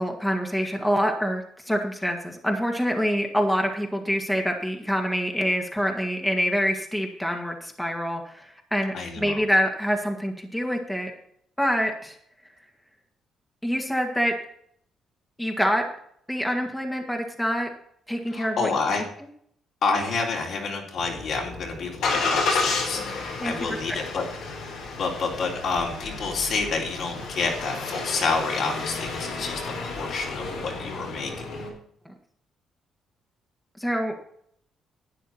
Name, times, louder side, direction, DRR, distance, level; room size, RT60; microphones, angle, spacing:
voice 1, 0.0-11.1 11.6-12.2 13.6-14.3 15.4-15.8 16.3-17.7 18.1-19.0 23.4-23.5 23.9-24.0 32.1-32.2 33.8-34.1, equal, 5° left, 2 dB, 1.9 m, -26 dB
voice 2, 8.9-9.4 18.3-19.0 19.8-24.5 25.0-31.4, left 4 dB, 65° left, -1 dB, 3.7 m, -29 dB
Engine starting, 21.0-31.7, left 4 dB, 85° left, 4.2 m, -31 dB
12.0 x 9.1 x 4.3 m, 0.66 s
cardioid pair, 90°, 0 cm